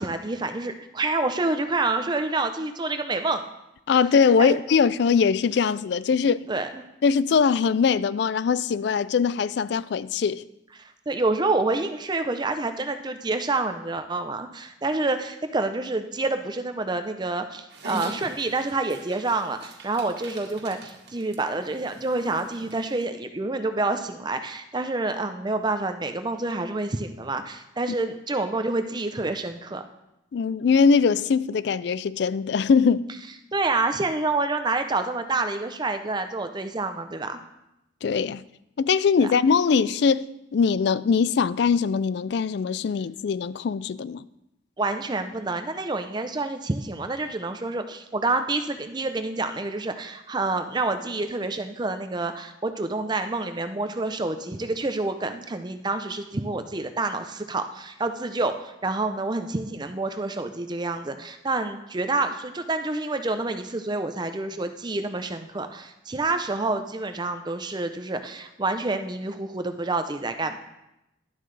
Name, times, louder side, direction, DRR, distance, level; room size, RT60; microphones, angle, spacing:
voice 1, 0.0-3.4 4.4-4.6 6.5-6.8 10.8-29.8 33.5-37.4 39.2-39.3 44.8-70.6, right 3 dB, 25° right, 0.5 m, -28 dB
voice 2, 3.9-6.5 7.0-10.4 30.3-33.1 38.0-38.4 38.8-40.3 40.5-44.2, left 5 dB, 60° left, 0.3 m, -21 dB
Dog, 17.7-23.0, right 2 dB, 60° right, 1.6 m, -42 dB
11.5 x 11.5 x 3.3 m
head